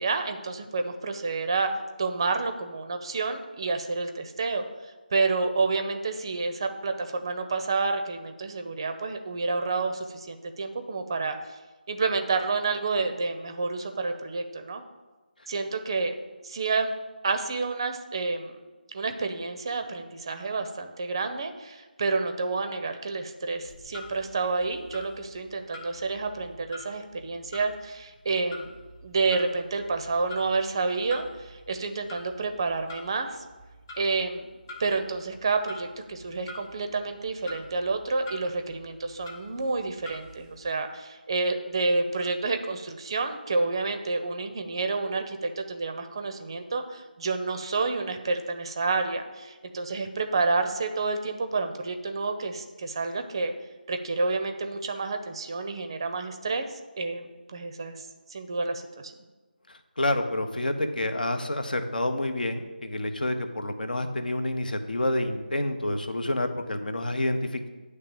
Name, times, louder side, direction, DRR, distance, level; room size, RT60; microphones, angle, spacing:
voice 1, 0.0-1.7 2.0-4.6 5.1-11.6 11.9-14.8 15.5-16.1 16.4-16.9 17.2-18.6 18.9-28.7 29.0-33.4 34.0-34.4 34.8-53.5 53.9-59.1, right 3 dB, 30° right, 7 dB, 0.5 m, -29 dB
Clock, 23.6-40.7, left 2 dB, 20° left, 0.9 m, -47 dB
voice 2, 59.7-67.7, left 1 dB, 60° left, 7 dB, 0.8 m, -28 dB
9.9 x 3.3 x 6.9 m, 1.2 s
figure-of-eight pair, 160°, 5 cm